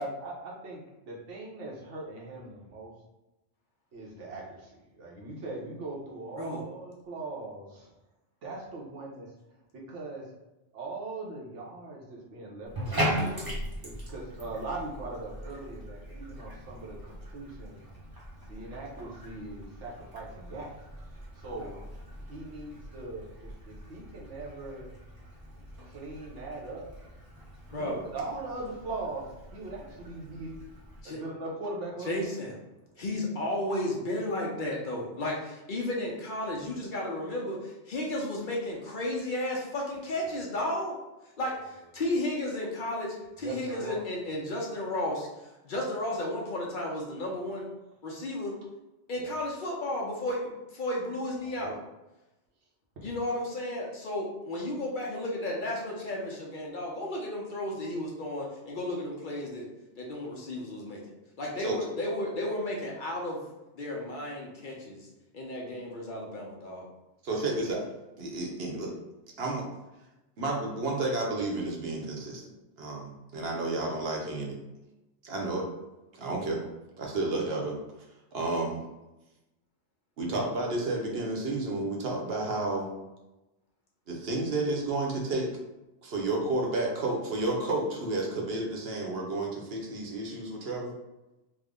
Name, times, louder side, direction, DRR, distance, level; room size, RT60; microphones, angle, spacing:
voice 1, 0.0-2.9 3.9-7.9 8.4-9.6 9.9-10.3 10.7-13.5 13.8-17.8 18.4-21.7 22.3-24.9 25.8-26.9 27.7-29.3 29.5-30.6 31.0-32.3 32.9-33.0 43.4-44.0 49.2-49.4 51.4-51.8 53.0-53.1, right 2 dB, 85° right, -3 dB, 1.2 m, -40 dB
Bathtub (filling or washing), 12.7-31.0, equal, 25° right, 0.6 m, -39 dB
voice 2, 32.0-32.5 33.0-40.9 41.4-45.3 45.6-47.7 48.0-48.5 49.1-51.7 53.0-59.7 60.0-61.0 61.4-63.4 63.7-65.1 65.3-66.9, left 1 dB, 50° left, -2 dB, 0.7 m, -33 dB
voice 3, 67.2-67.8 68.2-68.9 69.4-69.7 70.4-72.5 72.8-74.6 75.2-75.7 76.1-76.6 77.0-77.8 78.3-78.8 80.2-82.9 84.1-85.5 86.0-90.9, right 2 dB, 60° right, -1 dB, 0.9 m, -31 dB
3.4 x 2.1 x 3.6 m, 0.98 s
omnidirectional pair, 1.2 m